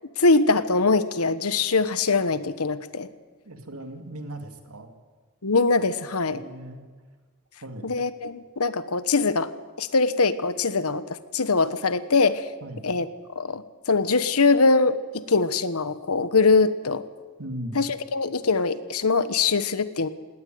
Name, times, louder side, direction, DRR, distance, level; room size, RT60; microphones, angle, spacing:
voice 1, 0.2-3.1 5.4-6.4 7.8-9.5 9.8-11.0 11.3-12.5 12.8-13.1 13.3-17.0 17.7-20.1, left 4 dB, 80° left, 13 dB, 1.2 m, -22 dB
voice 2, 3.5-4.9 6.3-6.9 7.6-7.9 12.6-12.8 17.4-17.8, right 1 dB, 85° right, 6 dB, 2.7 m, -37 dB
18.5 x 18.0 x 9.4 m, 1.4 s
head